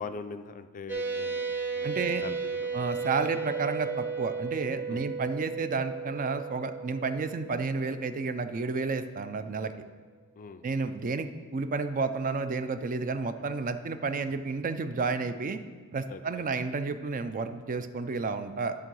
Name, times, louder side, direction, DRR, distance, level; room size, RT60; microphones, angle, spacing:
voice 1, 0.0-2.7 3.0-3.1 4.9-5.0 10.4-10.6 16.1-16.5, left 4 dB, 35° left, 10 dB, 0.4 m, -42 dB
sound 1, 0.9-8.9, right 5 dB, 10° right, 0.8 m, -35 dB
voice 2, 1.8-2.2 2.7-9.7 10.6-15.6 15.9-18.8, right 4 dB, 40° right, 10 dB, 0.4 m, -31 dB
11.0 x 3.8 x 6.2 m, 1.5 s
head